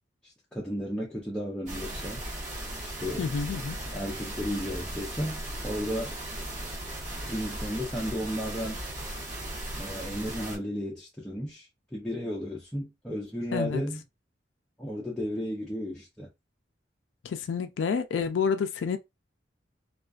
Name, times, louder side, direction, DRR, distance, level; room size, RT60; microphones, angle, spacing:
voice 1, 0.2-2.2 2.8-3.3 3.9-6.1 7.3-8.8 9.8-14.0 14.8-16.3, equal, 5° left, 0.5 m, -34 dB
sound 1, 1.7-10.6, right 1 dB, 45° right, 1.1 m, -37 dB
voice 2, 3.2-3.8 13.5-13.8 17.2-19.0, left 6 dB, 80° left, 0.3 m, -29 dB
2.3 x 2.3 x 2.3 m
head